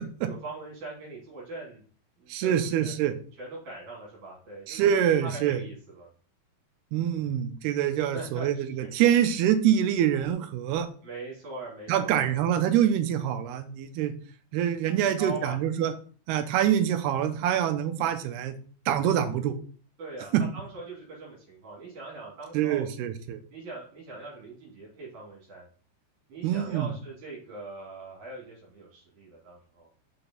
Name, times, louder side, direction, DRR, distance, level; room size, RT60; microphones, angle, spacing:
voice 1, 0.2-1.8 2.2-2.9 3.4-4.9 5.2-6.1 8.0-8.9 11.0-12.3 14.9-15.6 20.0-22.8 23.5-25.7 26.3-29.9, right 3 dB, 50° right, -5 dB, 3.9 m, -41 dB
voice 2, 2.3-3.2 4.7-5.6 6.9-10.9 11.9-14.1 14.5-15.9 16.3-18.5 18.9-19.6 20.3-20.4 22.5-23.4 26.4-26.9, right 10 dB, 85° right, 9 dB, 2.7 m, -25 dB
6.8 x 6.0 x 3.9 m, 0.42 s
omnidirectional pair, 4.7 m